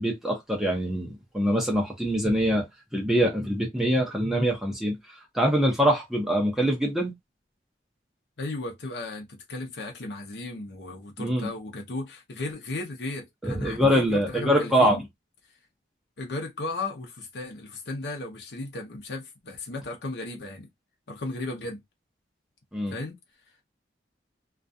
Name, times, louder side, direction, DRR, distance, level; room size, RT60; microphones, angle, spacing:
voice 1, 0.0-2.6 2.9-5.0 5.3-7.1 11.2-11.5 13.4-15.0 22.7-22.9, equal, 5° right, 0.8 m, -24 dB
voice 2, 8.4-15.0 16.2-20.7 21.1-21.8 22.9-23.2, left 2 dB, 75° left, 0.7 m, -35 dB
2.4 x 2.2 x 2.6 m
head